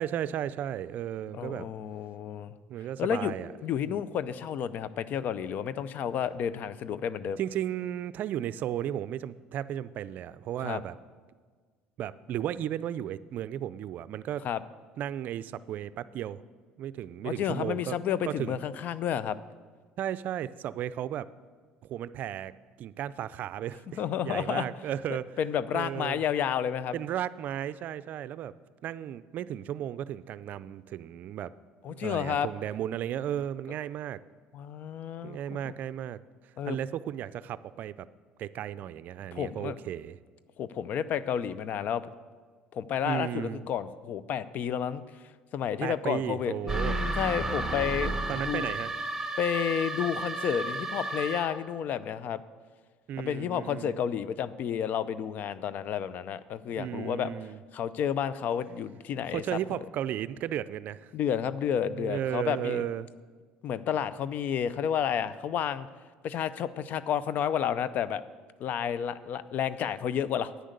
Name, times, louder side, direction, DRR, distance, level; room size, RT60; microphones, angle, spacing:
voice 1, 0.0-1.7 2.7-3.5 3.9-4.0 7.4-11.0 12.0-14.5 15.0-16.4 16.8-18.0 18.2-18.6 20.0-21.3 21.8-22.5 22.8-25.3 25.7-26.2 26.9-28.5 28.8-31.5 31.9-34.2 35.2-36.2 36.7-38.1 38.4-40.2 43.0-43.7 45.8-47.0 48.3-49.0 53.1-54.0 56.6-57.6 59.3-61.1 61.9-63.1, right 11 dB, 60° right, 16 dB, 0.4 m, -34 dB
voice 2, 1.3-2.6 3.0-3.3 3.6-7.4 10.6-10.8 14.4-14.6 17.2-19.4 24.0-24.7 25.4-26.9 31.8-32.5 34.5-35.4 36.6-36.8 39.3-39.8 40.6-42.0 42.7-48.2 48.5-48.7 49.4-52.4 53.2-57.3 57.7-59.6 61.1-62.8 63.6-65.9 66.2-68.2 68.6-70.5, left 8 dB, 55° left, 16 dB, 0.6 m, -31 dB
sound 1, 46.7-51.7, right 2 dB, 10° right, 1.3 m, -32 dB
10.0 x 9.4 x 6.7 m, 1.5 s
supercardioid pair, 95°, 3 cm